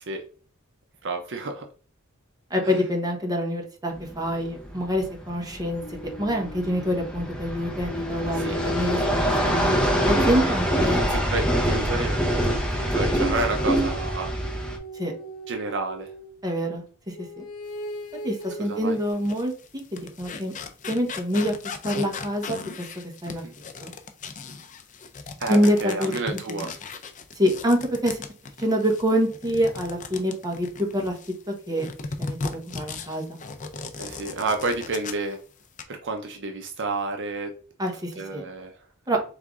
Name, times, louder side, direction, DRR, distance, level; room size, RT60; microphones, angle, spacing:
voice 1, 1.0-1.6 2.6-2.7 8.3-8.6 11.1-14.3 15.5-16.1 18.7-19.0 23.4-23.5 25.4-26.7 34.0-35.4 35.9-37.5 38.2-38.7, right 3 dB, 60° right, 5 dB, 0.6 m, -30 dB
voice 2, 2.5-5.8 6.2-9.7 10.1-11.0 14.9-15.1 16.4-17.4 18.2-19.5 19.9-20.5 20.9-21.5 21.8-22.6 23.2-23.4 23.8-23.9 25.5-26.1 26.5-26.7 27.4-28.2 28.6-31.1 31.5-31.9 32.2-33.2 37.8-38.4 39.1-39.2, equal, 20° right, 2 dB, 1.1 m, -26 dB
sound 1, 3.9-14.8, equal, 5° left, 0.9 m, -25 dB
sound 2, 5.8-7.3 7.9-11.7 12.8-16.4 17.1-19.1, left 1 dB, 70° left, 0.8 m, -37 dB
sound 3, 18.4-18.5 19.1-31.4 31.8-35.3 35.6-35.8, left 4 dB, 35° left, 0.5 m, -37 dB
3.7 x 3.4 x 3.6 m, 0.40 s
head